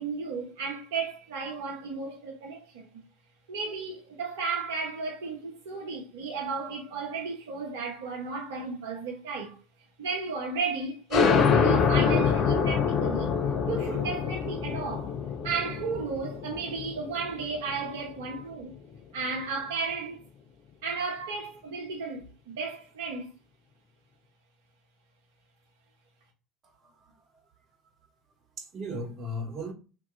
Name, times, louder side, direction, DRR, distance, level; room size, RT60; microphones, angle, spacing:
voice 1, 0.0-3.0 3.5-9.6 10.0-13.4 13.6-15.1 15.4-18.8 19.1-20.2 20.8-23.3, right 4 dB, 70° right, 0.8 m, -34 dB
sound 1, 11.1-18.4, left 6 dB, 40° left, 0.6 m, -26 dB
voice 2, 26.6-27.1 28.6-29.7, equal, 35° right, 1.2 m, -37 dB
3.0 x 2.8 x 3.6 m
figure-of-eight pair, 70°, 0 cm